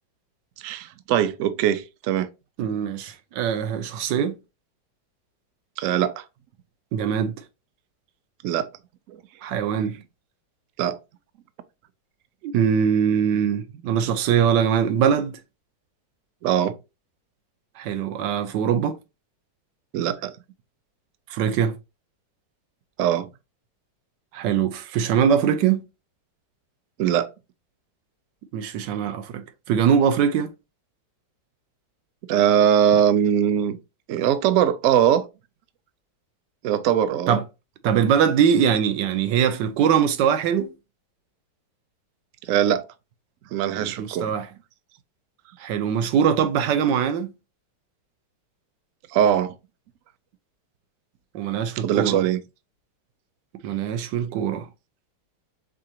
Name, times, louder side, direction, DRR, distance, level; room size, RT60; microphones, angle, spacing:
voice 1, 0.6-2.3 5.8-6.2 8.4-8.7 9.1-9.2 10.8-11.0 16.4-16.7 19.9-20.3 23.0-23.3 27.0-27.3 28.8-29.0 32.3-33.8 34.1-35.3 36.6-37.4 42.5-42.8 43.5-44.3 49.1-49.5 51.8-52.4, right 10 dB, 65° right, 0.8 m, -21 dB
voice 2, 2.6-4.4 6.9-7.4 9.4-10.0 12.4-15.4 17.8-19.0 21.3-21.7 24.3-25.8 28.5-30.5 37.3-37.4 37.8-40.7 43.8-44.5 45.6-47.3 51.3-52.2 53.6-54.7, right 8 dB, 85° right, 1.3 m, -22 dB
4.9 x 3.7 x 2.9 m
omnidirectional pair, 1.9 m